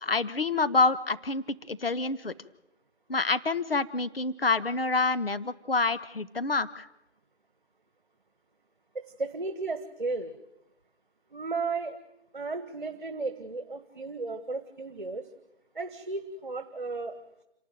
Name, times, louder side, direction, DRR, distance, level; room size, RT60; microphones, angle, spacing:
voice 1, 0.0-2.3 3.1-6.9, left 3 dB, 55° left, 14 dB, 1.3 m, -27 dB
voice 2, 9.2-10.3 11.3-12.0 12.3-15.2 15.7-17.2, right 3 dB, 45° right, 9 dB, 1.7 m, -34 dB
28.0 x 12.0 x 9.1 m, 0.89 s
figure-of-eight pair, 165°, 35 cm